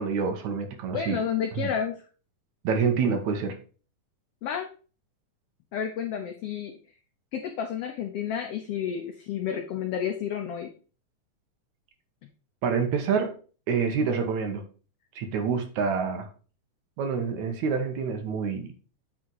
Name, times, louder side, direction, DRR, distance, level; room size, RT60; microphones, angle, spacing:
voice 1, 0.0-1.2 1.5-1.7 2.6-3.6 12.6-13.3 13.7-14.6 15.2-16.3 17.0-18.7, right 5 dB, 70° right, 5 dB, 2.3 m, -27 dB
voice 2, 0.9-2.0 4.4-4.7 5.7-6.8 7.3-10.7, left 8 dB, 85° left, 5 dB, 1.3 m, -31 dB
8.5 x 4.0 x 4.6 m, 0.38 s
omnidirectional pair, 3.6 m